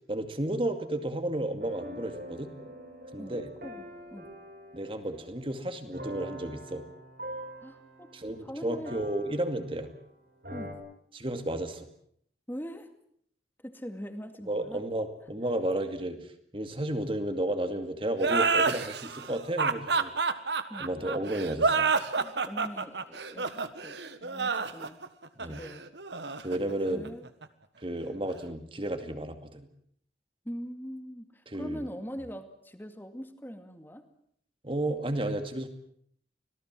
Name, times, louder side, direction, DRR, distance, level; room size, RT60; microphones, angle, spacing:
voice 1, 0.1-2.5 3.1-3.5 4.7-6.8 8.1-9.9 11.1-11.9 14.5-16.2 16.5-20.1 20.8-21.9 25.4-25.6 26.4-27.0 27.8-29.7 31.5-31.8 34.6-35.7, right 1 dB, 30° right, 7 dB, 2.3 m, -32 dB
sound 1, 1.6-10.0 10.4-10.7, equal, 55° right, 5.5 m, -45 dB
voice 2, 3.2-4.3 7.6-8.1 8.4-9.0 10.5-10.8 12.5-12.9 13.6-14.8 20.7-20.9 22.2-23.5 23.8-24.0 24.2-25.0 25.4-25.8 26.9-27.3 30.4-34.1, equal, 10° left, 7 dB, 2.2 m, -42 dB
sound 2, 18.2-27.4, right 4 dB, 80° right, 1.5 m, -29 dB
26.0 x 18.0 x 7.6 m, 0.66 s
head